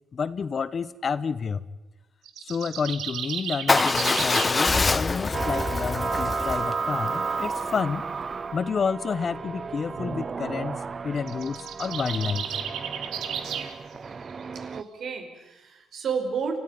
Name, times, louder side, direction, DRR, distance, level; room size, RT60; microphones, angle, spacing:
voice 1, 0.1-1.6 2.4-8.0 8.5-12.5, left 6 dB, 45° left, 15 dB, 1.1 m, -30 dB
sound 1, 2.3-4.6 11.2-13.7, right 8 dB, 80° right, 2.2 m, -33 dB
Motorcycle / Engine starting / Idling, 3.7-7.8, left 3 dB, 25° left, 0.8 m, -25 dB
sound 2, 5.3-14.8, right 5 dB, 40° right, 0.7 m, -33 dB
voice 2, 14.5-16.6, right 6 dB, 65° right, 5 dB, 4.9 m, -31 dB
29.0 x 14.5 x 9.6 m, 1.0 s
cardioid pair, 90°, 0 cm